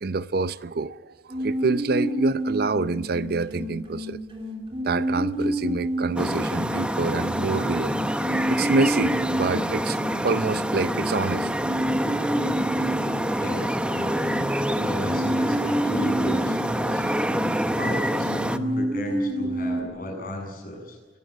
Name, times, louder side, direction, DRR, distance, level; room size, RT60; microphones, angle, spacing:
voice 1, 0.0-4.2 4.8-8.0 8.5-10.0 10.2-11.5, right 3 dB, 55° right, 0.6 m, -26 dB
sound 1, 1.3-19.8, equal, 30° right, 3.4 m, -30 dB
sound 2, 6.2-18.6, equal, 5° right, 0.8 m, -26 dB
voice 2, 12.8-14.5 14.8-17.0 17.6-21.0, equal, 50° left, 7.8 m, -34 dB
24.5 x 14.5 x 9.1 m
head